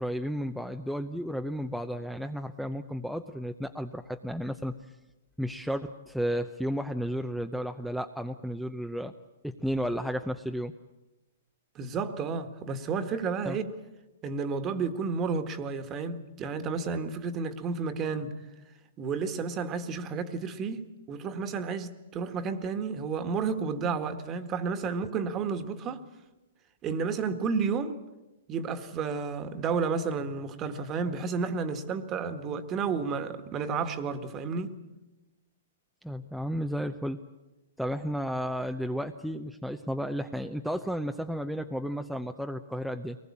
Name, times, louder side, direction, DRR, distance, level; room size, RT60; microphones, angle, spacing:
voice 1, 0.0-4.9 5.4-9.1 9.4-10.7 13.4-13.6 36.0-37.2 37.8-43.2, equal, ahead, 0.8 m, -33 dB
voice 2, 11.8-13.7 14.2-18.3 19.0-26.0 26.8-28.0 28.5-34.8, right 5 dB, 25° right, 1.7 m, -31 dB
22.5 x 19.5 x 8.7 m
hypercardioid pair, 130°, 0 cm